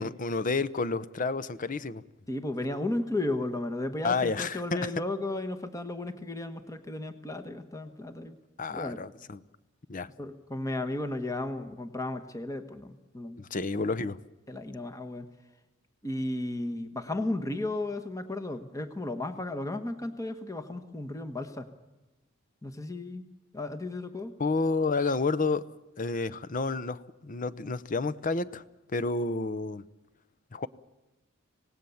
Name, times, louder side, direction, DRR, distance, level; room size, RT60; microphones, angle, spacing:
voice 1, 0.0-2.0 4.0-4.8 8.6-9.4 9.9-10.1 13.4-14.2 24.4-25.7 26.0-28.6 28.9-29.8 30.5-30.7, left 3 dB, 40° left, 16 dB, 0.7 m, -30 dB
voice 2, 2.3-8.4 8.7-9.0 10.2-13.4 14.5-15.3 16.0-21.7 22.6-23.3 23.5-24.3, left 2 dB, 15° left, 8 dB, 1.2 m, -34 dB
26.0 x 18.5 x 7.1 m, 1.0 s
head